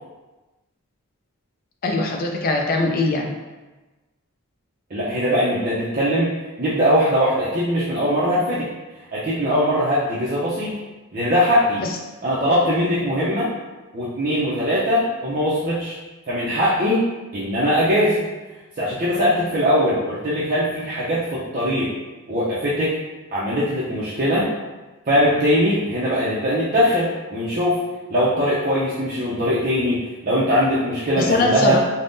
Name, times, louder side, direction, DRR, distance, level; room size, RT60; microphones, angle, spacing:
voice 1, 1.8-3.3 11.8-11.9 31.2-31.8, left 3 dB, 40° left, 2 dB, 0.3 m, -21 dB
voice 2, 4.9-6.3 6.6-8.7 9.1-10.7 11.1-11.8 12.2-13.5 13.9-16.0 16.3-17.0 17.3-18.2 18.8-21.9 22.3-22.9 23.3-24.5 25.1-27.8 28.1-31.8, equal, 40° right, -9 dB, 0.4 m, -21 dB
3.5 x 2.0 x 2.5 m, 1.2 s
head